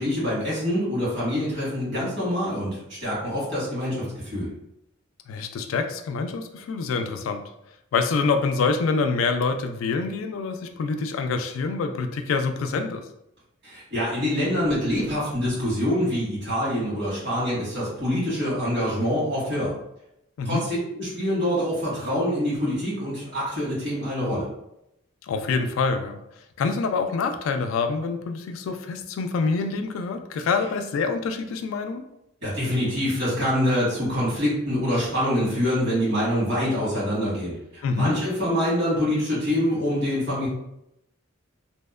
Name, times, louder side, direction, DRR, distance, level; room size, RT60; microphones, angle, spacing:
voice 1, 0.0-4.5 13.6-19.7 20.4-24.5 32.4-40.5, equal, 60° right, -8 dB, 1.4 m, -25 dB
voice 2, 5.3-7.4 7.9-13.0 20.4-20.6 25.2-26.2 26.6-32.0 37.8-38.1, left 4 dB, 80° left, 7 dB, 0.3 m, -26 dB
2.8 x 2.1 x 2.3 m, 0.83 s
head